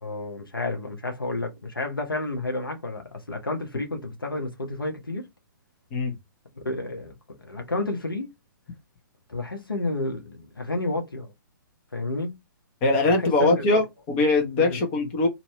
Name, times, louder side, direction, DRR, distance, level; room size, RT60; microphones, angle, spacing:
voice 1, 0.0-5.3 6.6-7.2 7.4-8.3 9.3-11.3 11.9-12.3 13.0-13.7 14.6-14.8, left 2 dB, 85° left, 1.1 m, -30 dB
voice 2, 12.8-15.3, left 2 dB, 35° left, 1.2 m, -22 dB
2.9 x 2.8 x 3.1 m
figure-of-eight pair, 125°, 11 cm